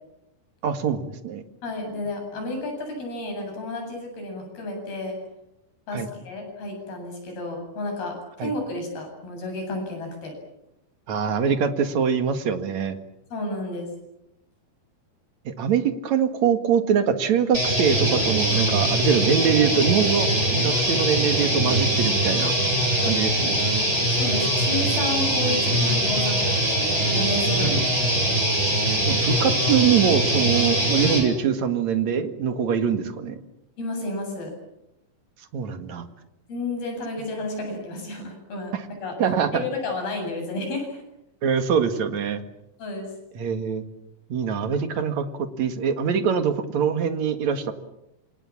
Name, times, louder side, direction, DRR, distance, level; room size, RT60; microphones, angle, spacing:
voice 1, 0.6-1.4 5.9-6.1 8.4-8.5 11.1-13.0 15.5-20.3 20.6-22.5 23.0-23.5 27.5-27.9 29.1-33.4 35.5-36.0 38.7-38.8 39.2-39.7 41.4-42.4 43.4-43.8 44.3-47.7, right 7 dB, 55° right, 8 dB, 2.9 m, -23 dB
voice 2, 1.6-5.2 5.9-10.3 13.3-13.9 23.0-23.2 24.1-27.7 33.8-34.6 36.5-38.7 39.0-39.2 39.5-41.0 42.8-43.1, left 2 dB, 75° left, 3 dB, 10.0 m, -31 dB
sound 1, 17.5-31.2, right 1 dB, 15° right, 6.8 m, -22 dB
27.5 x 27.0 x 7.4 m, 0.85 s
omnidirectional pair, 4.5 m